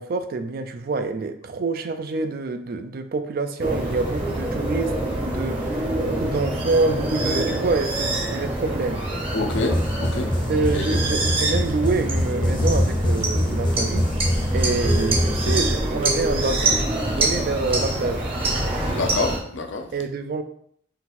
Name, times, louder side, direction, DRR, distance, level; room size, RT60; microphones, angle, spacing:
voice 1, 0.0-9.0 10.5-14.1 14.5-18.3 19.9-20.4, right 3 dB, 50° right, 9 dB, 0.4 m, -26 dB
sound 1, 3.6-19.4, right 2 dB, 30° right, 0.8 m, -26 dB
voice 2, 9.3-10.3 10.7-11.0 18.9-19.9, left 3 dB, 70° left, 5 dB, 0.6 m, -27 dB
sound 2, 9.5-15.8, left 1 dB, 25° left, 0.5 m, -24 dB
3.9 x 2.5 x 4.2 m, 0.66 s
head